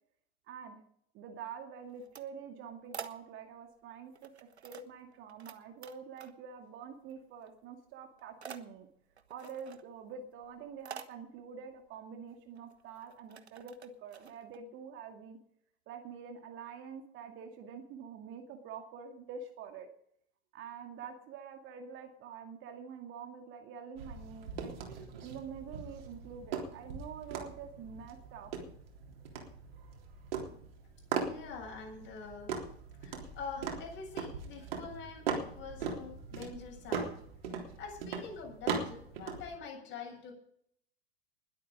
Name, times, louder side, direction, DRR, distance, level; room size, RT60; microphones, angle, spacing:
voice 1, 0.4-0.8 1.1-4.3 4.6-8.9 9.3-15.4 15.9-19.9 20.5-24.7 25.2-28.5, right 6 dB, 35° right, 4 dB, 2.2 m, -46 dB
sound 1, 1.8-3.7 4.1-5.6 5.8-6.7 6.9-7.6 7.9-14.6, right 6 dB, 75° right, 1.3 m, -50 dB
sound 2, 24.0-39.6, right 5 dB, 60° right, 3.7 m, -40 dB
voice 2, 31.3-32.6 33.0-37.1 37.8-40.3, left 5 dB, 35° left, 1 dB, 7.8 m, -45 dB
20.5 x 8.6 x 5.2 m, 0.66 s
figure-of-eight pair, 90°, 33 cm